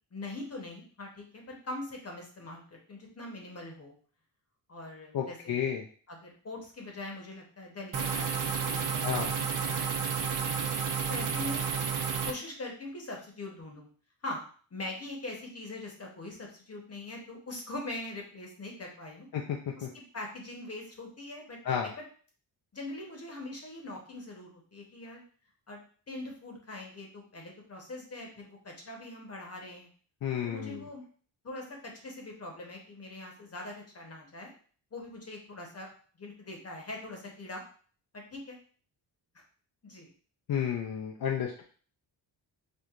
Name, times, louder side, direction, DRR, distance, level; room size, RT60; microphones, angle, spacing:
voice 1, 0.1-3.9 4.7-5.7 6.1-9.2 9.6-10.1 10.4-10.7 11.1-11.6 11.9-13.9 14.2-14.4 14.7-19.3 19.8-19.9 20.1-22.0 22.7-25.2 25.7-25.8 26.1-29.9 30.4-31.0 31.4-34.5 34.9-35.9 36.1-37.6 38.1-38.6 39.8-40.1, left 2 dB, 35° left, 0 dB, 1.0 m, -42 dB
voice 2, 5.1-5.8 9.0-9.3 19.3-19.4 19.8-19.9 21.6-21.9 30.2-30.8 40.5-41.6, left 8 dB, 55° left, 0 dB, 0.5 m, -31 dB
sound 1, 7.9-12.3, right 6 dB, 45° right, 0.5 m, -31 dB
4.5 x 2.5 x 2.4 m, 0.44 s
cardioid pair, 100°, 43 cm